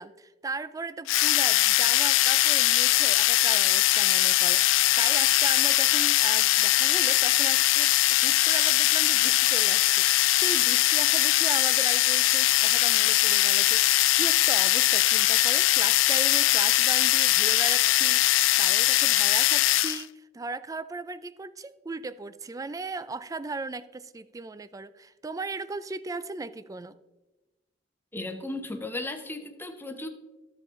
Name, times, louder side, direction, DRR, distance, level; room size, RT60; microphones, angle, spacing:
voice 1, 0.0-7.9 8.2-27.0, right 3 dB, 20° right, 15 dB, 0.3 m, -37 dB
sound 1, 1.1-20.0, left 16 dB, 80° left, 0.3 m, -21 dB
voice 2, 28.1-30.1, left 2 dB, 10° left, 5 dB, 0.8 m, -35 dB
14.0 x 5.1 x 3.7 m, 1.1 s
head